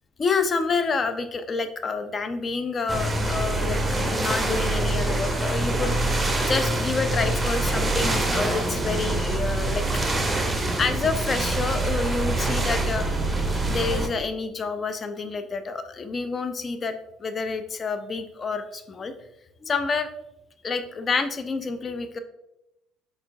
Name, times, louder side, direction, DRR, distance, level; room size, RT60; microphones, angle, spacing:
voice 1, 0.2-3.8 4.1-6.1 6.4-9.8 10.8-13.2 13.7-19.1 19.6-20.1 20.6-22.2, left 4 dB, 35° left, 9 dB, 0.4 m, -28 dB
sound 1, 2.9-14.1, right 2 dB, 15° right, 0.7 m, -25 dB
4.3 x 3.2 x 2.5 m, 0.88 s
figure-of-eight pair, 55°, 0 cm